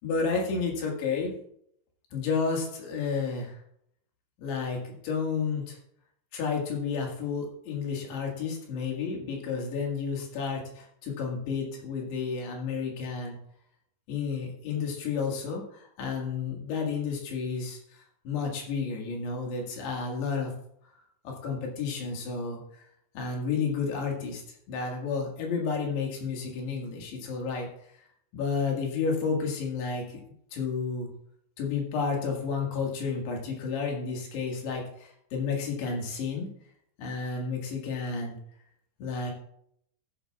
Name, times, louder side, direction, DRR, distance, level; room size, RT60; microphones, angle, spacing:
voice 1, 0.0-1.3 2.1-3.6 4.4-5.8 6.3-13.4 14.1-20.5 21.3-22.6 23.2-24.4 24.7-27.7 28.3-30.2 30.5-31.1 31.6-36.5 37.0-38.4 39.0-39.3, left 5 dB, 70° left, 0 dB, 3.8 m, -31 dB
14.5 x 11.0 x 2.4 m, 0.72 s
omnidirectional pair, 5.3 m